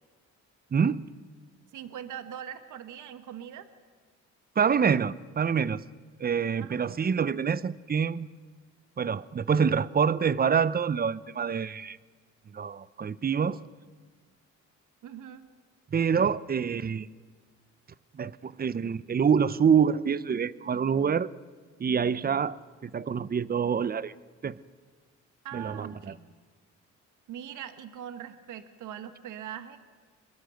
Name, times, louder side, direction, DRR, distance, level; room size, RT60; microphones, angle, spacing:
voice 1, 0.7-1.0 4.6-5.8 6.2-8.3 9.0-12.0 12.5-13.6 15.9-17.1 18.1-21.3 21.8-22.6 22.8-24.1 24.4-24.6 25.5-25.9, right 7 dB, 30° right, 18 dB, 0.7 m, -26 dB
voice 2, 1.7-3.7 6.6-7.0 15.0-15.5 25.4-26.3 27.3-29.8, right 9 dB, 80° right, 10 dB, 1.5 m, -41 dB
25.0 x 21.0 x 7.8 m, 1.5 s
cardioid pair, 90°, 30 cm